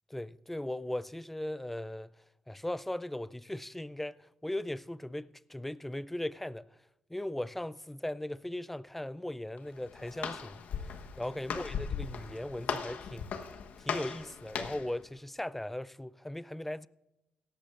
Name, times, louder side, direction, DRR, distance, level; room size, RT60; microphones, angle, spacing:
voice 1, 0.1-2.1 2.5-6.7 7.1-10.9 11.2-13.3 13.8-16.9, left 1 dB, 5° left, 0.4 m, -38 dB
Walk footsteps, 9.6-14.9, left 6 dB, 70° left, 1.1 m, -38 dB
17.0 x 13.5 x 2.5 m
cardioid pair, 75°, 3 cm